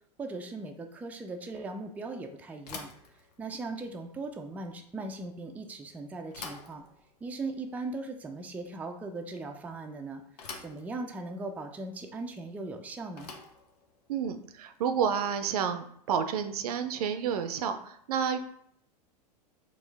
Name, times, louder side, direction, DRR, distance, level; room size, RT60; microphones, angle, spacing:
voice 1, 0.2-2.9 3.4-6.8 7.2-10.2 10.6-13.3, right 3 dB, 10° right, 4 dB, 0.4 m, -39 dB
Bicycle / Thump thud, 2.6-15.7, left 4 dB, 75° left, 0.8 m, -50 dB
voice 2, 14.1-18.4, right 7 dB, 65° right, 9 dB, 0.5 m, -30 dB
4.3 x 2.4 x 3.4 m, 0.68 s
hypercardioid pair, 95°, 21 cm